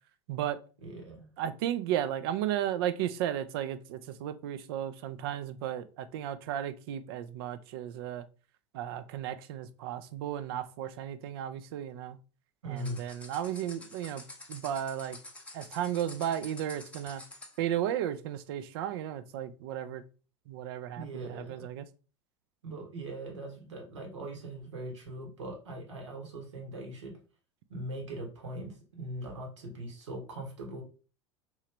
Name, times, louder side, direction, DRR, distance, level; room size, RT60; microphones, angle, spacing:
voice 1, 0.3-0.6 1.4-8.3 8.7-12.2 12.7-14.2 14.5-15.2 15.5-17.2 17.6-20.0 20.5-21.9, right 11 dB, 50° right, 12 dB, 0.4 m, -34 dB
voice 2, 0.8-1.3 12.6-13.0 21.0-21.7 22.6-27.2 27.7-30.8, right 1 dB, 70° right, 1 dB, 1.1 m, -41 dB
sound 1, 12.8-17.6, left 2 dB, 10° left, 0.7 m, -49 dB
3.0 x 2.7 x 3.3 m, 0.36 s
figure-of-eight pair, 80°, 16 cm